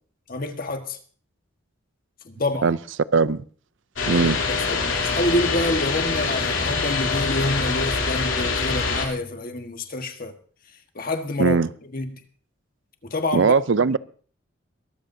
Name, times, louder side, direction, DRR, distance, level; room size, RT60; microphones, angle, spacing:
voice 1, 0.3-1.0 2.2-2.7 4.0-10.3 10.9-11.6 11.9-12.2 13.0-13.5, left 1 dB, 45° left, 1.5 m, -27 dB
voice 2, 3.1-3.4 4.1-4.4 11.4-11.7 13.3-14.0, right 4 dB, 65° right, 0.5 m, -19 dB
sound 1, 4.0-9.1, left 4 dB, 70° left, 3.3 m, -24 dB
23.0 x 13.5 x 2.7 m
head